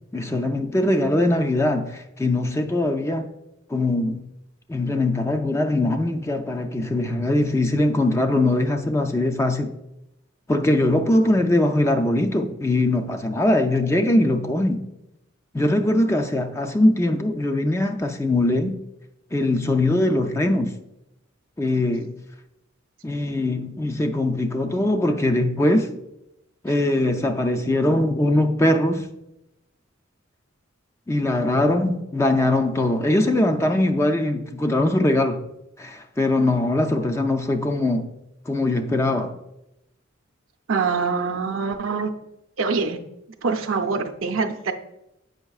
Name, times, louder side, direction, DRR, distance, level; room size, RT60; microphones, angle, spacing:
voice 1, 0.1-3.3 3.7-4.2 4.7-9.7 10.5-14.8 15.5-18.8 19.3-20.7 21.6-22.1 23.0-25.9 26.6-29.1 31.1-35.4 35.8-38.1 38.5-39.4, left 1 dB, 15° left, 0.4 m, -21 dB
voice 2, 40.7-42.1 42.6-43.0 43.4-44.7, right 4 dB, 75° right, 0.6 m, -24 dB
7.9 x 5.3 x 2.3 m
head